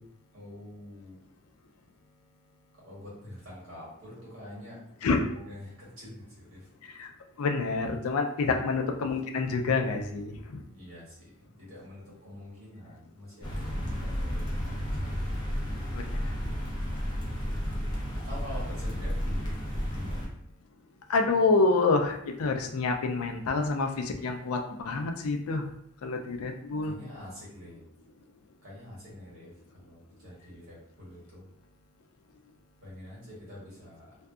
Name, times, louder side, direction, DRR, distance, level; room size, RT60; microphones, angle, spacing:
voice 1, 0.3-1.2 2.7-4.8 5.2-6.7 8.5-8.6 10.7-15.2 17.9-19.6 19.9-20.3 26.8-27.8 28.6-31.5 32.8-34.2, left 1 dB, 75° right, -6 dB, 1.3 m, -46 dB
voice 2, 7.4-10.6 15.9-16.3 21.1-25.7 26.0-26.9, left 3 dB, 85° left, 4 dB, 0.4 m, -27 dB
sound 1, 13.4-20.3, equal, 20° left, 0.5 m, -32 dB
2.6 x 2.2 x 2.3 m, 0.71 s
head